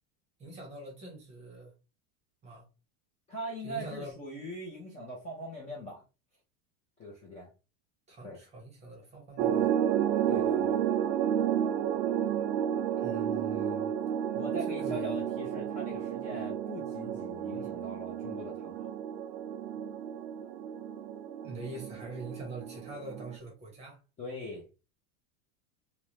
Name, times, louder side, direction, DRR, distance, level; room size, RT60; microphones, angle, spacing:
voice 1, 0.4-1.7 2.4-2.7 3.6-4.2 8.1-9.8 13.0-13.9 14.7-15.1 21.4-24.0, right 2 dB, 15° right, 0.8 m, -44 dB
voice 2, 3.3-6.0 7.0-7.5 8.2-8.4 10.3-10.8 14.3-18.9 24.2-24.6, equal, 15° left, 0.5 m, -41 dB
sound 1, 9.4-23.4, right 9 dB, 75° right, 0.5 m, -31 dB
2.5 x 2.1 x 3.0 m
supercardioid pair, 155°, 42 cm